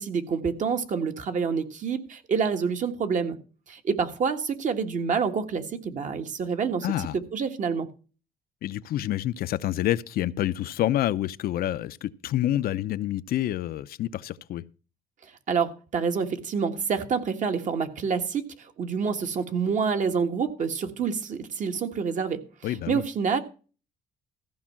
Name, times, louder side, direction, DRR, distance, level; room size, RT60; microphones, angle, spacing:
voice 1, 0.0-3.4 3.7-6.9 7.3-7.9 15.5-23.4, right 6 dB, 50° right, 1.6 m, -27 dB
voice 2, 6.8-7.2 8.6-14.6 22.6-23.0, left 13 dB, 65° left, 0.6 m, -28 dB
14.5 x 5.4 x 7.3 m
cardioid pair, 110°, 17 cm